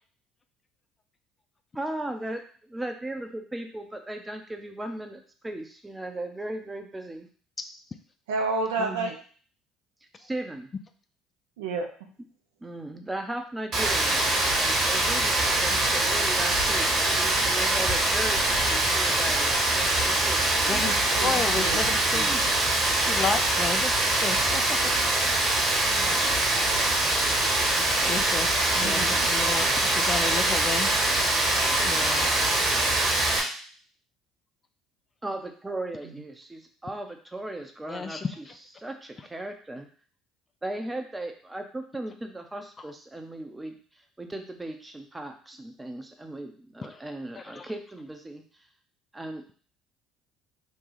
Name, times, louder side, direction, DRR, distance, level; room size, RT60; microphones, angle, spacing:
voice 1, 1.7-7.3 8.8-9.1 10.2-10.7 12.6-20.9 22.1-22.5 28.8-29.2 35.2-38.5 38.8-39.9 40.6-43.8 44.2-48.4 49.1-49.5, right 1 dB, 15° right, 5 dB, 0.7 m, -37 dB
voice 2, 8.3-9.2 11.6-12.1 20.8-21.8 28.8-29.1, right 3 dB, 75° right, 2 dB, 0.6 m, -30 dB
Rain, 13.7-33.4, right 2 dB, 50° right, 1.2 m, -24 dB
voice 3, 21.2-22.3 23.0-24.9 25.8-26.2 27.7-30.9 31.9-32.3 37.9-38.3 46.9-47.0 47.4-47.7, left 5 dB, 30° left, 7 dB, 0.4 m, -32 dB
3.0 x 2.3 x 3.9 m, 0.44 s
hypercardioid pair, 60°, 0 cm